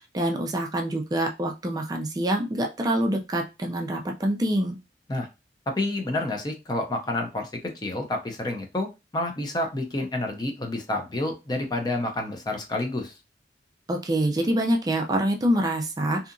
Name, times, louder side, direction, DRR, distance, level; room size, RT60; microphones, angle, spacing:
voice 1, 0.0-4.8 13.9-16.3, right 1 dB, 20° right, 3 dB, 0.4 m, -26 dB
voice 2, 5.7-7.5 7.8-13.1, left 2 dB, 25° left, 3 dB, 0.6 m, -29 dB
2.8 x 2.4 x 2.5 m, 0.25 s
head